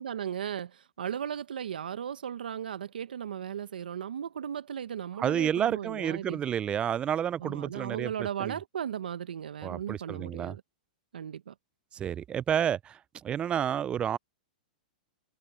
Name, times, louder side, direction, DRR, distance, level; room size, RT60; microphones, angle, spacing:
voice 1, 0.0-6.4 7.4-10.6 11.1-11.5, right 9 dB, 85° right, 0.9 m, -36 dB
voice 2, 5.2-8.1 8.4-8.5 9.6-10.6 11.9-13.0 13.2-14.2, right 9 dB, 20° right, 0.4 m, -30 dB
hypercardioid pair, 125°, 5 cm